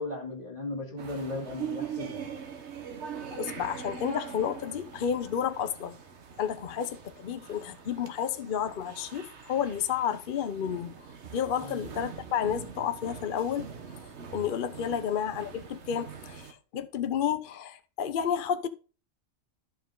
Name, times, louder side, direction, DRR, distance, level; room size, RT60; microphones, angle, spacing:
voice 1, 0.0-2.3 11.6-11.8 14.9-15.0, left 2 dB, 30° left, 2.8 m, -37 dB
sound 1, 1.0-16.5, right 7 dB, 60° right, 1.5 m, -43 dB
voice 2, 3.3-6.0 6.4-10.9 11.3-13.7 14.3-18.7, left 8 dB, 50° left, 0.7 m, -31 dB
11.5 x 5.2 x 3.8 m
omnidirectional pair, 1.3 m